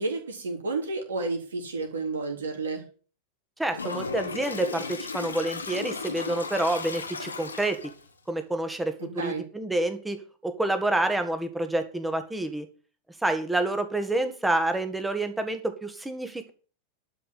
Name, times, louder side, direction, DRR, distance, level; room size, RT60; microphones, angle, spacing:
voice 1, 0.0-2.8 9.0-9.4, right 3 dB, 70° right, 3 dB, 3.6 m, -31 dB
voice 2, 3.6-7.8 8.3-12.7 13.2-16.5, right 2 dB, 5° right, 9 dB, 1.9 m, -28 dB
Toilet flush, 3.7-8.1, left 4 dB, 75° left, 1.5 m, -35 dB
12.0 x 5.6 x 8.4 m, 0.38 s
figure-of-eight pair, 90°, 0 cm